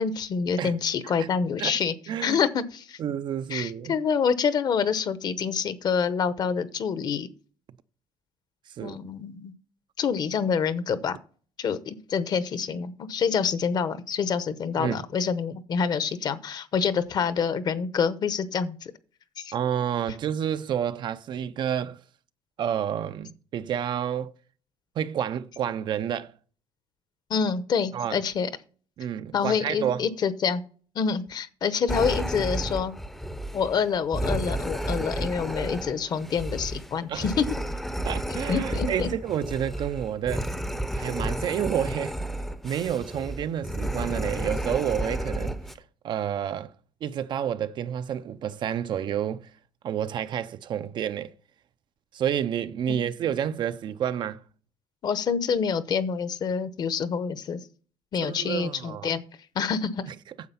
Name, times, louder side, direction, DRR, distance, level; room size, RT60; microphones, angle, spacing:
voice 1, 0.0-1.9 2.2-3.0 3.5-7.3 8.8-9.5 10.0-11.2 11.6-18.9 19.4-19.5 27.3-28.5 29.3-30.6 30.9-32.9 33.5-37.4 38.3-39.1 55.0-57.6 58.1-59.2 59.5-60.1, left 6 dB, 35° left, 0.8 m, -27 dB
voice 2, 2.1-2.4 3.0-3.9 8.8-9.0 14.8-15.0 19.5-22.0 22.6-24.3 25.0-26.3 27.9-28.2 29.0-30.0 37.1-37.3 38.0-40.5 40.9-42.2 42.6-45.6 46.0-46.7 47.0-49.5 49.8-51.3 52.1-54.4 58.2-59.1 60.1-60.2, right 9 dB, 40° right, 0.5 m, -29 dB
sound 1, 31.9-45.7, right 1 dB, ahead, 0.6 m, -32 dB
9.5 x 7.7 x 5.6 m
cardioid pair, 180°, 12 cm